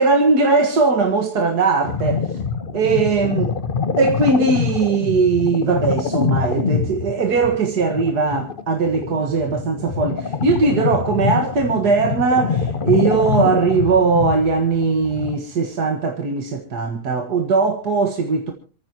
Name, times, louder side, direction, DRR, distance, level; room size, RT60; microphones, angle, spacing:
voice 1, 0.0-2.4 2.7-3.5 4.0-18.5, right 4 dB, 85° right, 2.2 m, -19 dB
sound 1, 1.8-15.3, left 5 dB, 35° left, 1.1 m, -25 dB
28.0 x 14.0 x 2.9 m
omnidirectional pair, 1.7 m